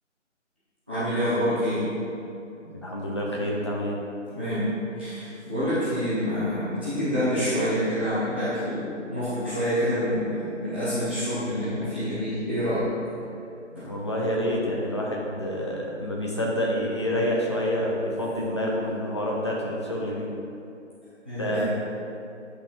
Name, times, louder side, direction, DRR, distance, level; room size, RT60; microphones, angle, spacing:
voice 1, 0.9-1.8 4.3-4.7 5.0-12.9 13.7-13.9 21.2-21.7, equal, 10° right, -15 dB, 0.8 m, -27 dB
voice 2, 2.6-4.0 13.7-20.3 21.4-21.7, equal, 25° left, -3 dB, 0.9 m, -28 dB
10.0 x 5.8 x 4.6 m, 2.7 s
figure-of-eight pair, 160°, 37 cm